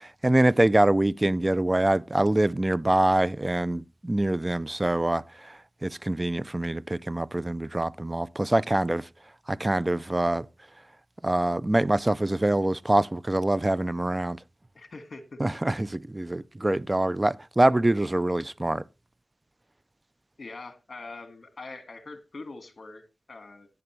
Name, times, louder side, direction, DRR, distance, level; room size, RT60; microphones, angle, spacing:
voice 1, 0.0-9.1 9.5-10.5 11.2-14.4 15.4-18.8, right 1 dB, 25° right, 0.4 m, -25 dB
voice 2, 2.8-3.2 14.7-15.4 20.4-23.7, left 3 dB, 55° left, 1.8 m, -43 dB
11.0 x 9.8 x 3.1 m
cardioid pair, 60°, 0 cm